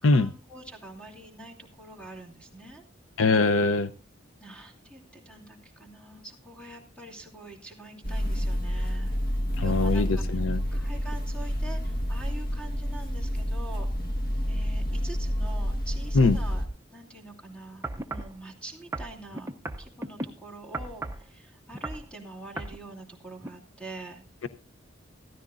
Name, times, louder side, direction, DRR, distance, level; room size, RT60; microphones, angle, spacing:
voice 1, 0.0-2.8 4.4-9.2 9.6-10.4 10.7-13.9 14.5-16.6 16.9-19.5 19.8-24.2, right 2 dB, 5° left, 1 dB, 2.7 m, -45 dB
voice 2, 3.2-3.9 9.6-10.6 16.1-16.4, left 3 dB, 80° left, 13 dB, 0.6 m, -22 dB
sound 1, 8.0-16.7, equal, 45° left, 1.6 m, -29 dB
sound 2, 17.8-18.3 18.9-20.3 20.7-21.3 21.7-22.1 22.6-22.8 23.4-23.5, right 2 dB, 15° right, 0.6 m, -35 dB
15.5 x 14.0 x 2.5 m, 0.34 s
head